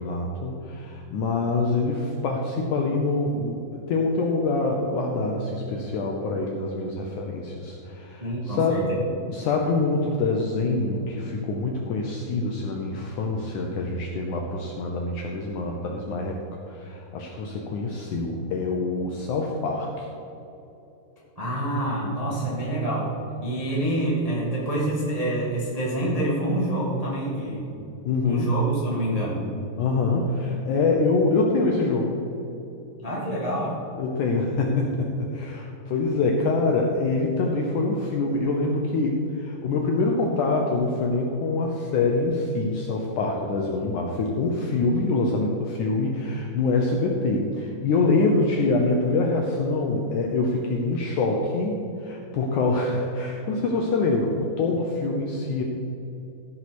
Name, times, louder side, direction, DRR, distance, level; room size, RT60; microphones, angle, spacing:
voice 1, 0.0-8.9 9.3-16.4 16.7-20.1 28.1-28.5 29.8-32.2 34.0-55.6, left 3 dB, 75° left, 0 dB, 1.9 m, -25 dB
voice 2, 8.2-9.1 21.3-23.1 23.4-27.7 28.2-29.4 33.0-33.8, right 1 dB, 25° right, -5 dB, 0.8 m, -26 dB
15.0 x 5.7 x 6.2 m, 2.9 s
omnidirectional pair, 4.5 m